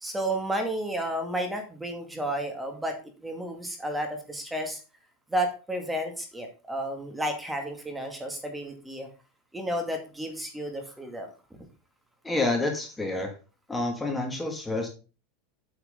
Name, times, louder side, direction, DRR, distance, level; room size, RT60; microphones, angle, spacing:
voice 1, 0.0-2.9 3.2-4.8 5.3-9.1 9.5-11.3, right 1 dB, 10° right, 4 dB, 2.3 m, -32 dB
voice 2, 12.2-13.3 13.7-14.9, left 2 dB, 10° left, 3 dB, 2.2 m, -28 dB
8.3 x 7.9 x 3.8 m, 0.33 s
supercardioid pair, 115°, 0 cm